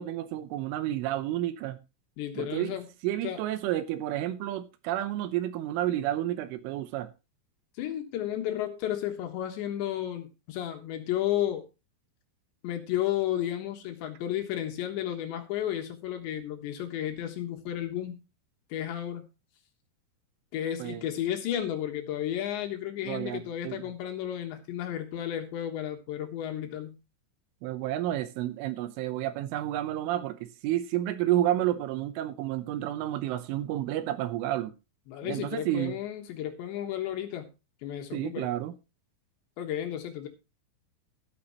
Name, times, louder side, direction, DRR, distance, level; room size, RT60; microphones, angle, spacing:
voice 1, 0.0-1.8 2.4-2.8 3.0-7.1 20.8-21.0 23.0-23.9 27.6-34.7 35.2-35.9 38.1-38.7, right 13 dB, 80° right, 3.2 m, -30 dB
voice 2, 2.2-2.9 3.2-3.4 7.8-11.6 12.6-18.2 18.7-19.3 20.5-27.0 35.1-37.5 37.8-38.5 39.6-40.3, left 11 dB, 70° left, 3.3 m, -33 dB
13.0 x 12.5 x 3.0 m
omnidirectional pair, 6.0 m